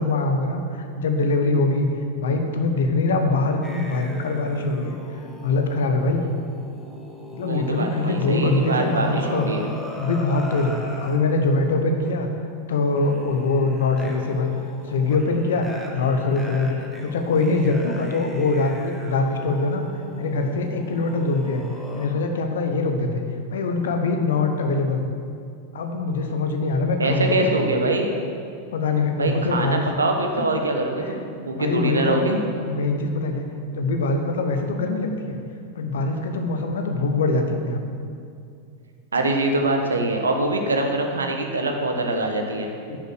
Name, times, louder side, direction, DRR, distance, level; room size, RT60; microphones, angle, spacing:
voice 1, 0.0-1.9 2.2-6.3 7.3-9.5 10.0-10.7 11.0-12.3 12.7-14.5 14.9-16.7 17.0-19.9 20.2-21.6 21.9-23.2 23.5-25.0 25.7-27.7 28.7-29.9 30.4-30.5 31.0-31.2 31.4-32.2 32.7-33.4 33.7-35.4 35.7-37.8 42.9-43.0, left 3 dB, 60° left, 5 dB, 1.1 m, -23 dB
sound 1, 3.6-11.2 12.0-12.3 12.9-22.1, left 1 dB, 5° left, 1.4 m, -39 dB
voice 2, 7.4-9.7 27.0-28.1 29.2-32.4 39.1-42.7, right 2 dB, 75° right, 3 dB, 1.2 m, -23 dB
9.8 x 6.8 x 6.4 m, 2.4 s
figure-of-eight pair, 90°, 0 cm